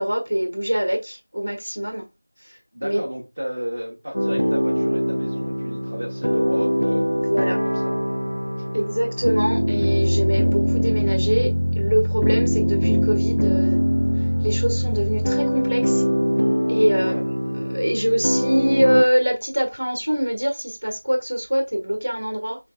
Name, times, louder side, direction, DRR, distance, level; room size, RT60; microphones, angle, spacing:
voice 1, 0.0-2.0 2.4-3.0 7.3-7.6 8.7-11.5 11.8-13.8 14.4-16.0 16.7-17.1 17.5-22.6, equal, 60° right, 1.4 m, -23 dB
voice 2, 2.7-7.1 7.6-7.9 8.6-8.9 16.9-17.2, equal, 30° right, 1.0 m, -33 dB
sound 1, 4.1-19.0, equal, 85° left, 0.4 m, -22 dB
6.3 x 3.2 x 2.3 m
figure-of-eight pair, 175°, 0 cm